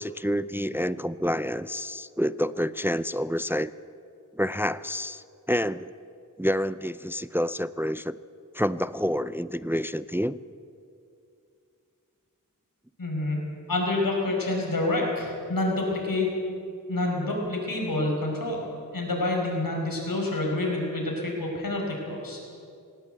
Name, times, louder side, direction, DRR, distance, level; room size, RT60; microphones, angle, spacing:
voice 1, 0.0-3.7 4.3-5.9 6.4-8.2 8.5-10.4, equal, 5° right, 15 dB, 0.5 m, -28 dB
voice 2, 13.0-16.3 16.9-18.6 18.9-22.4, left 2 dB, 85° left, -1 dB, 5.3 m, -28 dB
18.5 x 18.5 x 8.1 m, 2.5 s
wide cardioid pair, 50°, 33 cm